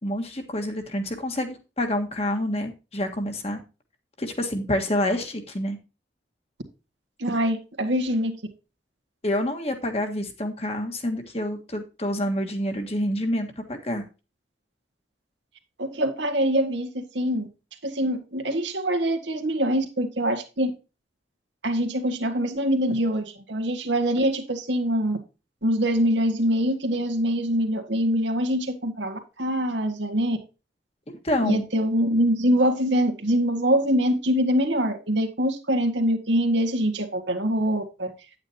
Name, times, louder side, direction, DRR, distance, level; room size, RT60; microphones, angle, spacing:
voice 1, 0.0-3.6 4.2-5.8 9.2-14.0 31.1-31.7, left 1 dB, 35° left, 1.5 m, -27 dB
voice 2, 7.2-8.4 15.8-17.5 17.8-20.7 21.6-25.2 25.6-30.4 31.4-38.1, equal, 85° right, 1.8 m, -24 dB
9.5 x 8.8 x 2.8 m
head